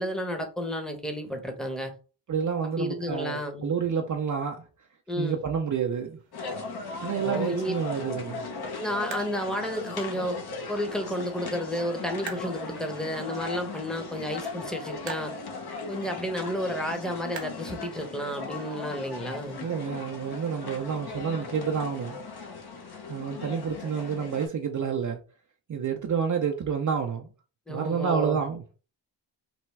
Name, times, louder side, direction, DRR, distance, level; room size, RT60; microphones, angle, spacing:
voice 1, 0.0-1.9 2.6-3.7 5.1-5.4 7.2-7.7 8.8-10.4 10.7-15.3 15.9-19.6 27.7-28.4, equal, ahead, 0.9 m, -32 dB
voice 2, 2.3-4.6 5.2-6.2 7.0-8.5 19.6-22.2 23.1-25.2 25.7-27.3 27.7-28.7, right 6 dB, 40° right, 0.6 m, -29 dB
sound 1, 5.2-18.4, right 6 dB, 65° right, 0.9 m, -49 dB
sound 2, 6.3-24.5, left 4 dB, 55° left, 1.0 m, -38 dB
3.4 x 2.2 x 3.2 m
cardioid pair, 55°, 46 cm